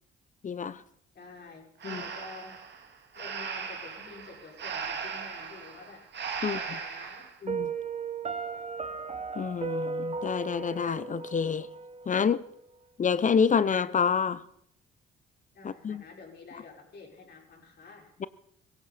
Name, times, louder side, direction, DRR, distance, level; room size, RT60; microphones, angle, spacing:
voice 1, 0.4-0.8 1.8-2.0 6.4-6.6 7.4-7.7 9.3-11.7 12.1-12.5 13.0-14.4 15.6-16.0, left 6 dB, 40° left, 0.8 m, -27 dB
voice 2, 1.1-2.6 3.1-6.1 6.4-7.3 15.5-18.1, left 3 dB, 55° left, 6.1 m, -48 dB
Breathing, 1.8-7.3, right 6 dB, 55° right, 2.6 m, -38 dB
Piano, 7.5-12.4, right 5 dB, 30° right, 1.4 m, -36 dB
19.0 x 17.0 x 4.3 m
supercardioid pair, 65°, 21 cm